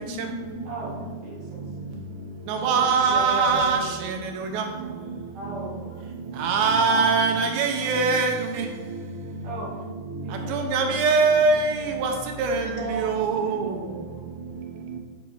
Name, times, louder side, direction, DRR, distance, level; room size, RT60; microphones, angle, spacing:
voice 1, 0.1-1.5 1.9-2.0 2.5-3.1 3.9-5.2 5.9-6.0 12.6-12.7, left 1 dB, 80° left, 2.7 m, -41 dB
voice 2, 1.2-1.6 2.5-3.9 4.8-6.0 6.8-7.9 9.4-9.7 10.2-10.3 12.8-14.2, right 2 dB, 65° right, 2.9 m, -35 dB
voice 3, 2.5-3.8 4.5-4.6 6.4-8.3 10.5-11.7 12.0-12.1 12.4-12.7 13.0-13.6, right 4 dB, 85° right, 2.6 m, -21 dB
8.1 x 3.1 x 4.8 m
omnidirectional pair, 4.2 m